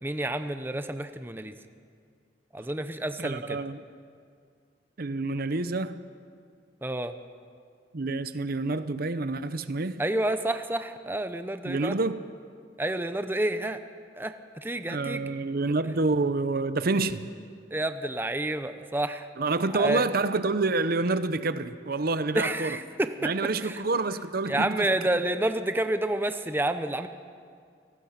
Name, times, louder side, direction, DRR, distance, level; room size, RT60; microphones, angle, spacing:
voice 1, 0.0-1.5 2.5-3.6 6.8-7.1 10.0-11.9 12.8-13.8 14.1-15.3 17.7-19.3 19.7-20.1 22.3-23.3 23.6-23.8 24.5-27.1, right 1 dB, 10° right, 0.8 m, -29 dB
voice 2, 3.2-3.8 5.0-6.0 7.9-10.0 11.6-12.2 14.9-17.3 19.4-22.8 23.2-24.9, right 3 dB, 55° right, 0.8 m, -28 dB
29.0 x 19.0 x 5.8 m
head